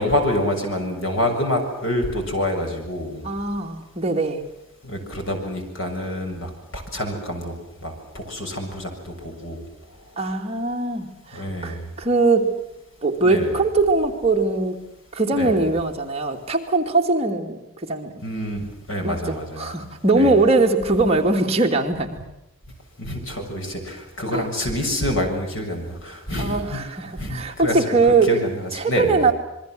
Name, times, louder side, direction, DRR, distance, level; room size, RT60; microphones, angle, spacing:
voice 1, 0.0-3.3 4.8-7.5 7.8-9.6 11.3-11.9 13.2-13.5 15.3-15.6 18.2-19.7 20.2-20.3 23.0-26.8 27.2-27.8 28.3-29.3, left 1 dB, 65° left, 3 dB, 7.0 m, -27 dB
voice 2, 3.2-4.4 10.2-12.5 13.0-14.8 15.1-18.1 19.0-22.2 24.3-24.5 26.4-28.3 28.7-29.3, right 3 dB, 30° right, 2 dB, 2.5 m, -21 dB
27.0 x 22.5 x 7.8 m, 0.87 s
head